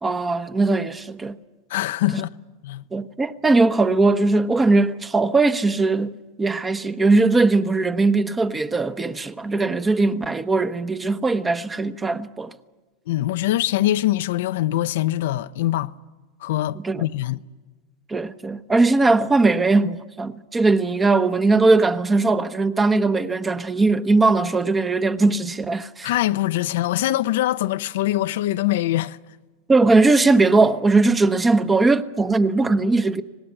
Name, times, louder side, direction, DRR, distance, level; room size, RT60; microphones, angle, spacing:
voice 1, 0.0-1.4 2.9-6.1 6.4-12.5 16.8-17.0 18.1-26.1 29.7-33.2, right 3 dB, 15° right, 1.0 m, -19 dB
voice 2, 1.7-2.3 2.6-2.8 13.1-15.9 16.4-17.4 26.0-29.2, left 14 dB, 75° left, 0.7 m, -23 dB
25.5 x 18.5 x 8.4 m
hypercardioid pair, 115°, 0 cm